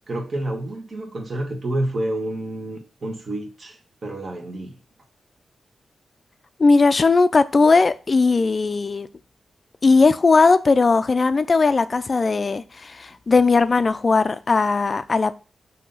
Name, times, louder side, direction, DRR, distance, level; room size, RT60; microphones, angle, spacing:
voice 1, 0.1-4.7, right 1 dB, 45° right, 1.5 m, -29 dB
voice 2, 6.6-9.1 9.8-15.4, left 4 dB, 40° left, 0.4 m, -18 dB
6.1 x 2.8 x 5.5 m
cardioid pair, 90°, 0 cm